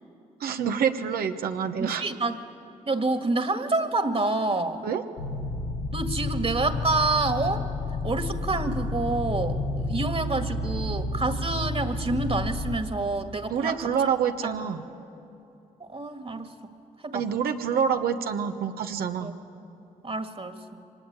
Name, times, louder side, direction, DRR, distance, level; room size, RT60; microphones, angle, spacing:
voice 1, 0.4-2.0 4.8-5.0 13.5-14.8 17.1-19.3, right 7 dB, 80° right, 7 dB, 1.2 m, -27 dB
voice 2, 1.8-2.4 2.9-4.8 5.9-7.7 8.0-13.9 14.4-14.5 15.8-16.5 17.0-17.2 19.2-19.3 20.0-20.6, right 3 dB, 40° right, 8 dB, 2.0 m, -28 dB
sound 1, 5.2-12.8, left 2 dB, 80° left, 1.2 m, -30 dB
24.0 x 19.5 x 8.9 m, 2.8 s
supercardioid pair, 50°, 15 cm